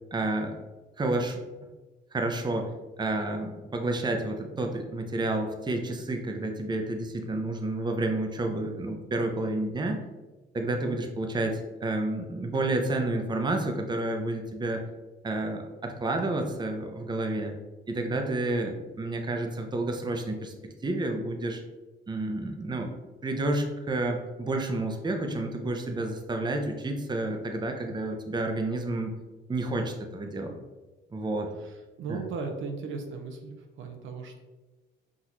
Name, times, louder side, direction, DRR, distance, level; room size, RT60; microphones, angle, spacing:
voice 1, 0.1-0.6 1.0-1.4 2.1-2.7 3.0-10.0 10.5-14.8 15.2-17.5 17.9-20.5 20.8-21.6 22.1-22.9 23.2-29.1 29.5-30.5 31.1-31.5 32.1-32.2, right 2 dB, 20° right, 4 dB, 0.6 m, -30 dB
voice 2, 31.6-34.4, right 4 dB, 75° right, 4 dB, 0.7 m, -37 dB
5.9 x 2.6 x 3.0 m, 1.2 s
cardioid pair, 90°, 20 cm